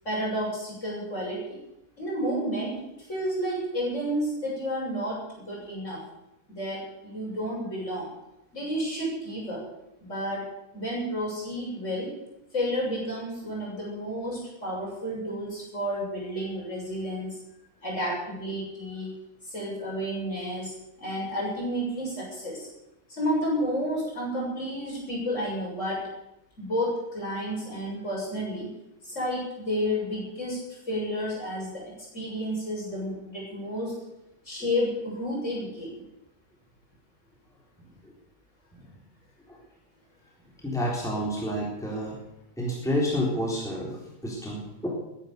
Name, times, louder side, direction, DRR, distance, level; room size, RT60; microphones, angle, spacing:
voice 1, 0.1-1.6 2.0-6.0 6.5-8.1 8.5-9.6 10.0-10.4 10.7-12.1 12.5-17.4 17.8-19.1 19.5-20.7 21.0-22.7 23.1-26.0 26.6-28.7 29.0-30.6 30.9-31.8 32.1-33.9 34.5-35.9, equal, 40° left, -4 dB, 7.5 m, -31 dB
voice 2, 40.6-42.2 42.6-44.9, equal, ahead, -4 dB, 3.7 m, -29 dB
21.0 x 10.0 x 6.8 m, 0.88 s
omnidirectional pair, 1.9 m